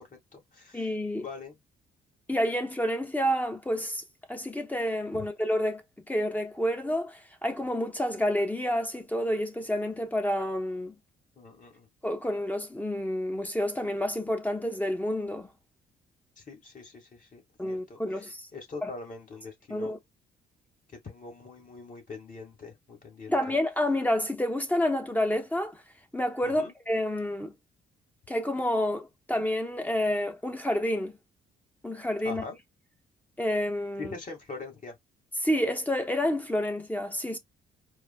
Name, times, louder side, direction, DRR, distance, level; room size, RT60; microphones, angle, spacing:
voice 1, 0.1-0.9 1.2-1.6 5.1-5.3 11.4-11.9 16.4-19.9 20.9-23.4 26.4-26.7 32.2-32.6 34.0-34.9, left 4 dB, 40° left, 1.7 m, -43 dB
voice 2, 0.7-1.3 2.3-4.0 4.3-5.8 6.1-10.9 12.0-15.5 17.6-18.5 18.8-18.9 19.7-20.0 23.3-25.8 26.1-27.5 28.3-31.2 31.8-32.4 33.4-34.1 35.4-37.4, left 1 dB, 10° left, 0.8 m, -29 dB
4.7 x 2.1 x 2.2 m
cardioid pair, 90°, 20 cm